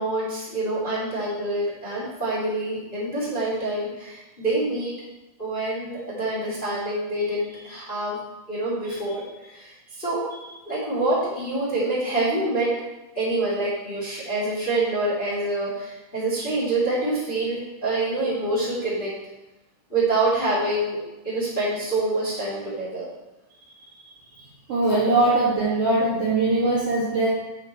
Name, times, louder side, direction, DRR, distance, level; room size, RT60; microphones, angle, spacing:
voice 1, 0.0-4.9 5.4-8.2 8.5-12.7 13.1-19.1 19.9-21.0 21.2-23.1 23.9-24.0, right 2 dB, 15° left, -8 dB, 1.8 m, -26 dB
voice 2, 24.7-27.3, right 2 dB, 50° right, -8 dB, 2.1 m, -21 dB
7.3 x 6.7 x 4.4 m, 1.0 s
omnidirectional pair, 5.2 m